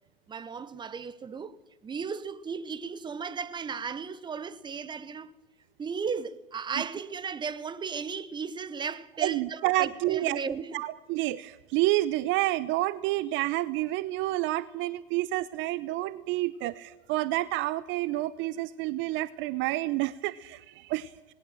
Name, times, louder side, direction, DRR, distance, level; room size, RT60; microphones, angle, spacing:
voice 1, 0.3-1.6 1.8-5.3 5.8-10.8, right 6 dB, 15° right, 1.0 m, -35 dB
voice 2, 9.2-10.4 10.7-21.1, right 17 dB, 40° right, 0.7 m, -29 dB
19.5 x 18.0 x 7.7 m
hypercardioid pair, 105°, 30 cm